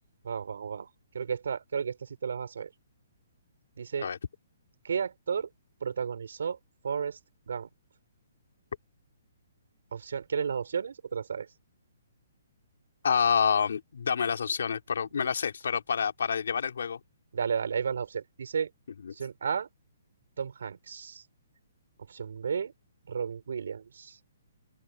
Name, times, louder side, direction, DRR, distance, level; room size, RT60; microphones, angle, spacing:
voice 1, 0.2-0.9 1.1-2.7 3.8-4.1 4.8-5.5 5.8-6.6 6.8-7.2 7.5-7.7 9.9-11.5 17.3-18.7 19.1-19.7 20.4-21.2 22.1-22.7 23.1-24.2, right 6 dB, 70° right, 4.8 m, -33 dB
voice 2, 13.0-17.0 19.0-19.1, left 6 dB, 70° left, 3.2 m, -28 dB
open air
hypercardioid pair, 170°, 0 cm